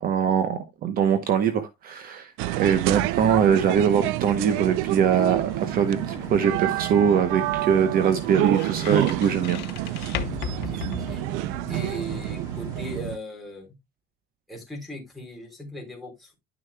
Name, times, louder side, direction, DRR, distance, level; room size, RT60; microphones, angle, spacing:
voice 1, 0.0-9.6, right 7 dB, 45° right, 0.9 m, -22 dB
sound 1, 2.4-13.2, right 17 dB, 90° right, 0.5 m, -28 dB
sound 2, 2.7-13.0, equal, 15° right, 2.3 m, -42 dB
sound 3, 5.5-11.8, left 8 dB, 60° left, 1.0 m, -38 dB
voice 2, 10.4-11.2 11.7-13.7 14.5-16.4, left 1 dB, ahead, 3.3 m, -38 dB
11.0 x 6.6 x 2.2 m
cardioid pair, 150°, 20 cm